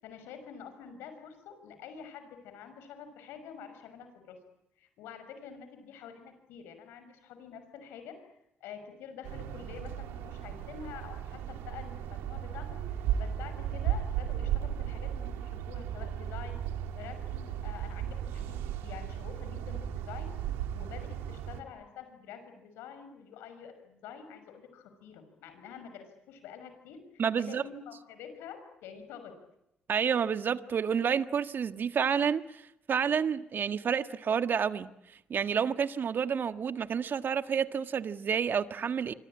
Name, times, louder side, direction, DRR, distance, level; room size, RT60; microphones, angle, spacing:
voice 1, 0.0-4.4 4.8-8.3 8.6-16.6 16.9-20.3 20.7-29.3, left 7 dB, 85° left, 6.0 m, -47 dB
sound 1, 9.2-21.6, right 10 dB, 85° right, 2.5 m, -35 dB
voice 2, 27.2-27.6 29.9-32.6 32.9-34.9 35.3-39.1, right 7 dB, 60° right, 1.6 m, -29 dB
26.0 x 26.0 x 8.8 m
supercardioid pair, 50°, 4 cm